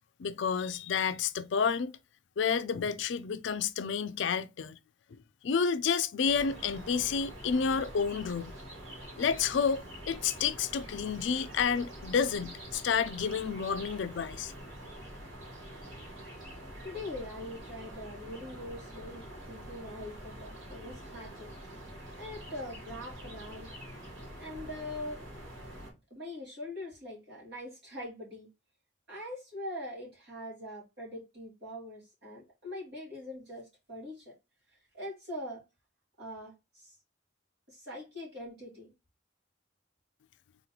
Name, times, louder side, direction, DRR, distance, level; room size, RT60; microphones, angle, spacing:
voice 1, 0.2-1.9 2.4-4.8 5.4-8.5 9.2-14.5, left 6 dB, 65° left, 0.4 m, -30 dB
sound 1, 6.3-25.9, right 1 dB, 80° right, 2.5 m, -46 dB
voice 2, 16.8-21.5 22.2-23.7 24.4-25.2 26.1-28.5 29.1-34.3 34.7-35.6 36.2-37.0 37.7-38.9, left 1 dB, 55° right, 2.5 m, -42 dB
3.8 x 3.0 x 3.8 m
head